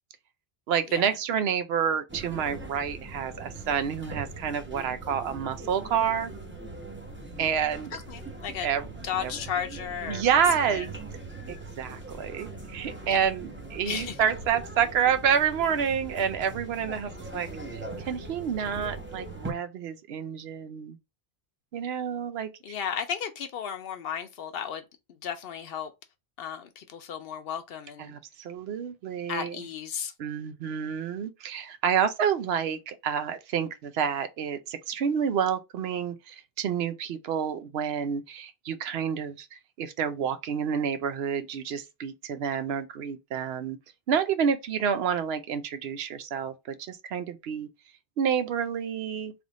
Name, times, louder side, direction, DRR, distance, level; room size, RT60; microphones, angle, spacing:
voice 1, 0.7-6.3 7.4-8.0 8.6-8.9 9.2-9.3 10.1-11.0 11.5-21.0 21.7-22.5 28.0-29.6 30.2-43.8 44.1-47.7 48.2-49.3, right 7 dB, 75° right, 0.8 m, -29 dB
sound 1, 2.1-19.5, right 2 dB, 15° right, 0.7 m, -41 dB
voice 2, 7.9-8.7 9.0-10.9 13.1-13.3 13.9-14.2 22.6-24.8 25.2-25.9 26.4-28.2 29.3-30.1, left 8 dB, 65° left, 0.7 m, -34 dB
3.4 x 2.5 x 3.9 m
omnidirectional pair, 1.1 m